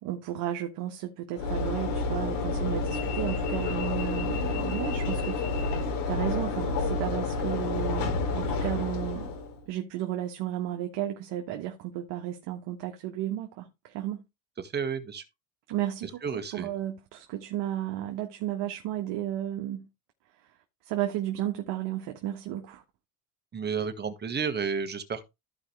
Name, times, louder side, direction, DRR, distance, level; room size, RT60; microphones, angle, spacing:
voice 1, 0.0-5.4 5.8-9.3 9.7-14.2 15.7-19.9 20.8-22.8, right 12 dB, 60° right, 1.6 m, -33 dB
Train / Engine / Alarm, 1.3-9.6, left 3 dB, 65° left, 3.6 m, -29 dB
voice 2, 14.6-15.2 16.2-16.7 23.5-25.2, right 6 dB, 20° right, 1.5 m, -31 dB
14.5 x 5.0 x 3.3 m
supercardioid pair, 120°, 45 cm